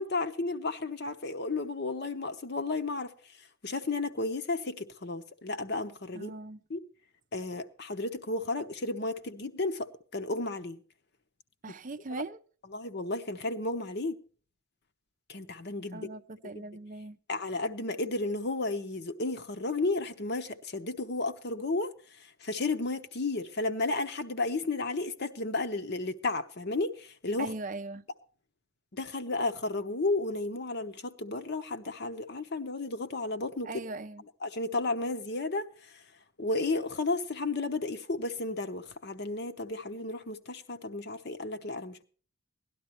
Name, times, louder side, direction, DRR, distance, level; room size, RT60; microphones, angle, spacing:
voice 1, 0.0-3.1 3.6-6.3 6.7-6.8 7.3-9.9 10.1-10.8 12.7-14.2 15.3-16.1 17.3-21.9 22.4-26.9 27.2-27.5 28.9-33.7 34.4-35.7 36.4-42.0, left 2 dB, 50° left, 0.9 m, -33 dB
voice 2, 6.1-6.6 11.6-12.4 15.9-17.2 27.4-28.1 33.6-34.2, right 3 dB, 40° right, 0.5 m, -40 dB
17.5 x 11.5 x 3.0 m
head